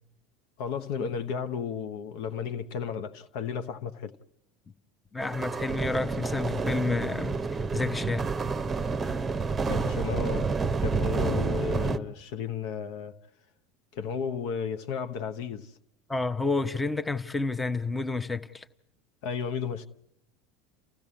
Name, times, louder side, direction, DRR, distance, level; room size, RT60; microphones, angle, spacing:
voice 1, 0.6-4.1 9.6-10.5 10.8-13.1 13.9-15.7 19.2-19.9, left 6 dB, 55° left, 1.0 m, -33 dB
voice 2, 5.1-8.3 16.1-18.7, left 3 dB, 10° left, 1.0 m, -30 dB
sound 1, 5.2-12.0, right 4 dB, 20° right, 0.9 m, -29 dB
29.0 x 15.0 x 8.5 m
figure-of-eight pair, 75°, 0 cm